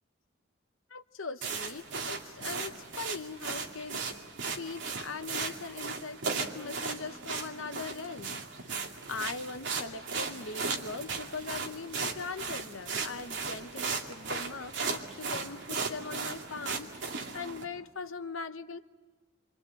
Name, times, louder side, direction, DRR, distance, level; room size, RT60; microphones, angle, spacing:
voice 1, 0.9-4.2 4.5-8.8 9.1-18.8, left 4 dB, 90° left, 9 dB, 1.1 m, -41 dB
sound 1, 1.4-17.6, right 4 dB, 65° right, 2.6 m, -36 dB
27.0 x 25.5 x 7.8 m, 1.4 s
head